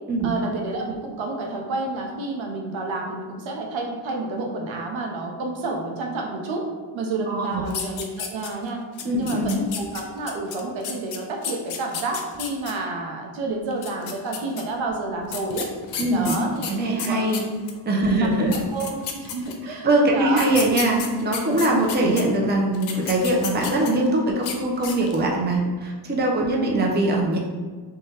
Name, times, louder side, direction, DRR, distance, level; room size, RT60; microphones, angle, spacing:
voice 1, 0.2-6.6 6.9-8.8 9.2-15.7 16.1-17.2 18.1-19.9 20.1-20.4 20.7-20.8 26.5-26.8, right 2 dB, 80° right, 1 dB, 0.6 m, -30 dB
voice 2, 7.3-7.7 9.0-9.6 16.0-16.4 16.7-17.4 17.9-18.7 19.6-27.4, right 1 dB, 25° right, -1 dB, 0.5 m, -22 dB
sound 1, 7.7-8.7 9.0-12.7 13.7-14.6 15.3-17.8 18.2-18.3 18.5-19.7 20.3-22.2 22.7-24.1 24.4-24.6 24.8-25.3, left 7 dB, 85° left, 0.5 m, -32 dB
3.1 x 2.3 x 2.8 m, 1.5 s
cardioid pair, 70°, 46 cm